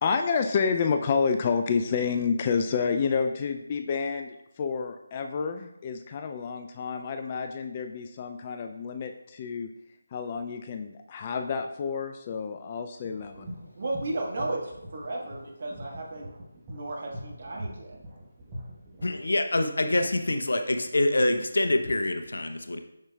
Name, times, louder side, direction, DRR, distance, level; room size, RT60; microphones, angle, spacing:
voice 1, 0.0-9.7 10.1-13.5, left 5 dB, 30° left, 6 dB, 0.3 m, -29 dB
sound 1, 13.0-19.2, equal, 20° right, 1.1 m, -43 dB
voice 2, 13.7-16.3 16.7-18.0, right 2 dB, 50° right, -1 dB, 1.5 m, -34 dB
voice 3, 19.0-22.8, left 2 dB, 70° left, 6 dB, 0.7 m, -25 dB
7.3 x 6.0 x 2.3 m, 0.84 s
figure-of-eight pair, 160°, 0 cm